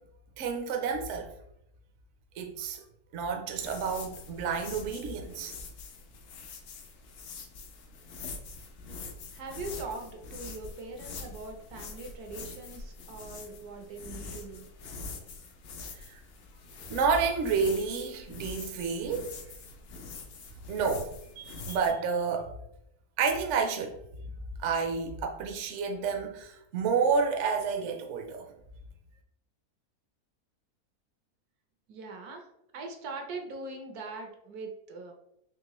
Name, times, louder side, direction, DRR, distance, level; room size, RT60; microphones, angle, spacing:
voice 1, 0.4-1.3 2.4-2.8 3.1-5.5 16.1-16.2 16.9-19.3 20.7-21.1 21.4-22.5 23.2-24.0 24.6-28.4, right 5 dB, 65° right, 4 dB, 0.8 m, -30 dB
sound 1, 3.5-21.9, left 3 dB, 75° left, 0.5 m, -44 dB
voice 2, 9.3-14.7 31.9-32.5 32.7-35.1, right 3 dB, 80° right, 3 dB, 1.2 m, -41 dB
3.7 x 2.9 x 2.9 m, 0.79 s
omnidirectional pair, 1.6 m